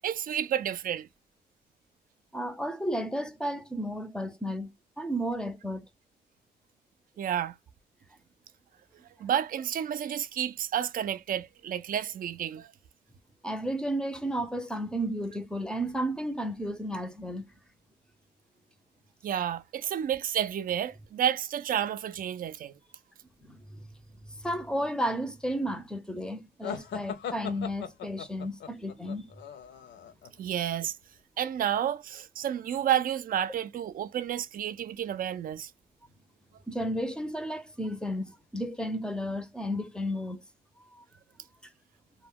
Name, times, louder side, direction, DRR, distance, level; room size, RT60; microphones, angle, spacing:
voice 1, 0.0-1.1 7.2-7.5 9.2-12.7 19.2-22.7 30.4-30.9 31.4-35.7, right 10 dB, 45° right, 0.4 m, -30 dB
voice 2, 2.3-4.7 5.0-5.9 13.4-17.5 23.4-23.9 24.3-29.3 36.7-40.4 40.9-41.0, equal, 5° left, 0.5 m, -33 dB
sound 1, 26.6-30.3, left 7 dB, 65° left, 0.6 m, -39 dB
2.2 x 2.0 x 3.5 m
cardioid pair, 90°, 20 cm